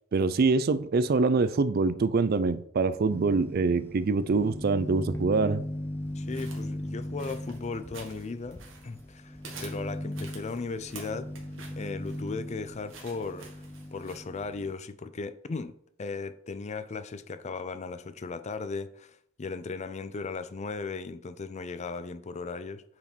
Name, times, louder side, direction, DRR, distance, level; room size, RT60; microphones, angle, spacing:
voice 1, 0.1-5.6, right 4 dB, 50° right, 0.4 m, -25 dB
sound 1, 3.1-14.7, left 1 dB, 10° left, 0.9 m, -39 dB
voice 2, 6.2-11.3 11.8-13.5 13.9-15.7 16.0-22.8, left 4 dB, 35° left, 0.5 m, -37 dB
sound 2, 6.3-9.1 9.4-14.2, right 4 dB, 80° right, 1.9 m, -49 dB
8.5 x 4.8 x 4.4 m
head